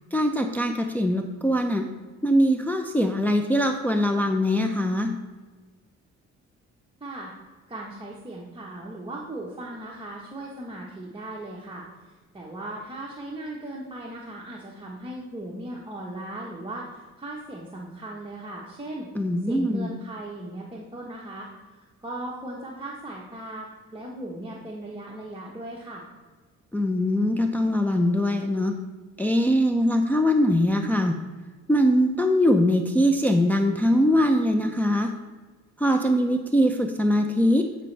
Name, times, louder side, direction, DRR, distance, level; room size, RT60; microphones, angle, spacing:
voice 1, 0.1-1.9 2.2-5.1 19.1-19.9 26.7-28.8 29.2-31.1 31.7-35.1 35.8-37.7, equal, 5° left, 3 dB, 0.6 m, -22 dB
voice 2, 7.0-7.3 7.7-19.1 19.5-21.5 21.8-23.7 23.9-26.1, right 1 dB, 15° right, -4 dB, 1.3 m, -38 dB
11.0 x 5.2 x 3.4 m, 1.4 s
cardioid pair, 90°, 30 cm